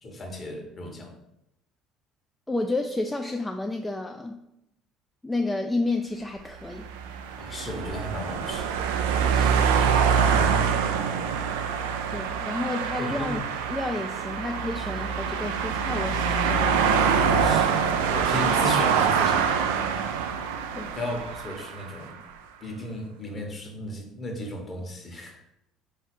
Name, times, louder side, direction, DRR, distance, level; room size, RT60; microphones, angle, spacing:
voice 1, 0.0-1.1 7.4-8.8 10.2-11.1 13.0-13.3 17.3-17.9 18.1-19.7 20.9-22.1 22.6-25.4, left 1 dB, 35° left, 2 dB, 1.1 m, -35 dB
voice 2, 2.5-4.4 5.2-6.9 9.3-9.8 12.1-13.4 13.7-16.8 20.7-21.0, left 2 dB, 10° left, 4 dB, 0.3 m, -31 dB
sound 1, 6.6-22.0, right 6 dB, 75° right, 0.3 m, -25 dB
3.9 x 2.8 x 4.4 m, 0.84 s
hypercardioid pair, 60°, 0 cm